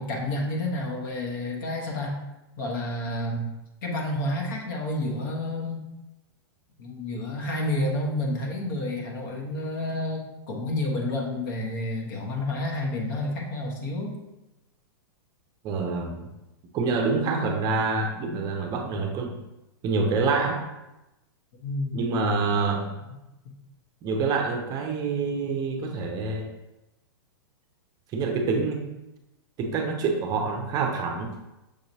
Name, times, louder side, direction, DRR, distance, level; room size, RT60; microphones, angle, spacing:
voice 1, 0.0-2.2 2.6-3.5 3.8-5.8 6.8-14.1 21.6-22.2 23.4-23.5, left 1 dB, 55° left, 0 dB, 1.1 m, -30 dB
voice 2, 15.6-16.3 16.7-19.4 19.8-20.7 21.9-22.9 24.0-26.5 28.1-28.9 29.6-31.4, right 4 dB, 30° right, 3 dB, 0.5 m, -26 dB
6.5 x 2.9 x 2.7 m, 0.97 s
hypercardioid pair, 135°, 13 cm